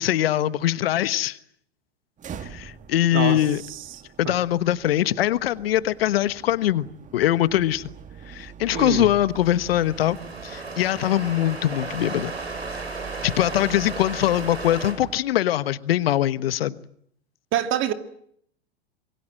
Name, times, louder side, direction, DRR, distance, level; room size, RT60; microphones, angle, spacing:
voice 1, 0.0-1.4 2.4-3.6 4.2-7.8 8.3-10.2 10.4-12.3 13.2-16.8, left 13 dB, 65° left, 1.3 m, -22 dB
sound 1, 2.2-15.2, right 7 dB, 25° right, 1.7 m, -43 dB
voice 2, 3.1-3.4 3.7-3.8 4.2-4.3 8.7-9.1 17.5-17.9, right 11 dB, 40° right, 2.5 m, -25 dB
sound 2, 9.3-14.9, right 3 dB, 90° right, 7.0 m, -35 dB
26.5 x 23.0 x 7.6 m
hypercardioid pair, 95°, 31 cm